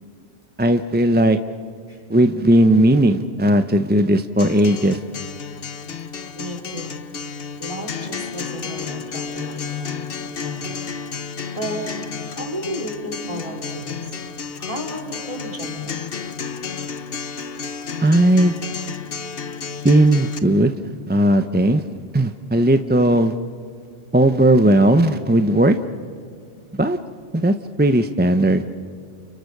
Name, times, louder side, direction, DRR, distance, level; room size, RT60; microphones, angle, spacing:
voice 1, 0.6-1.4 2.1-5.0 18.0-18.6 19.8-20.7 21.1-21.8 22.1-23.3 24.1-25.7 26.8-27.0 27.3-28.6, right 1 dB, 10° right, 8 dB, 0.5 m, -16 dB
Acoustic guitar, 4.4-20.4, left 6 dB, 50° left, 1.2 m, -32 dB
voice 2, 6.3-7.0 7.6-10.1 10.4-10.8 11.5-11.9 12.4-14.1 14.6-16.0, equal, 25° right, 0 dB, 4.2 m, -32 dB
29.5 x 29.5 x 6.6 m, 2.3 s
omnidirectional pair, 1.3 m